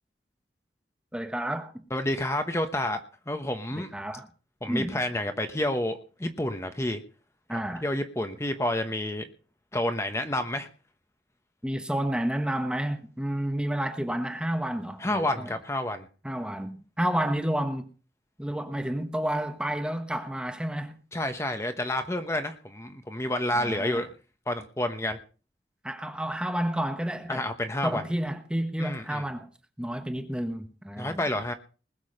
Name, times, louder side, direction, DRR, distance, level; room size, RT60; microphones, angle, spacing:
voice 1, 1.1-1.7 3.8-4.3 4.7-5.0 7.5-7.9 11.6-15.5 16.2-17.9 18.4-21.0 23.5-24.0 25.8-27.5 27.8-29.5 29.8-31.2, right 1 dB, 5° right, 1.1 m, -30 dB
voice 2, 1.9-3.0 3.3-3.9 4.6-7.0 7.5-9.3 9.7-10.7 15.0-16.1 21.1-24.1 24.5-25.2 27.3-28.0 28.8-29.2 31.0-31.5, left 1 dB, 15° left, 1.1 m, -29 dB
20.5 x 7.1 x 5.5 m
head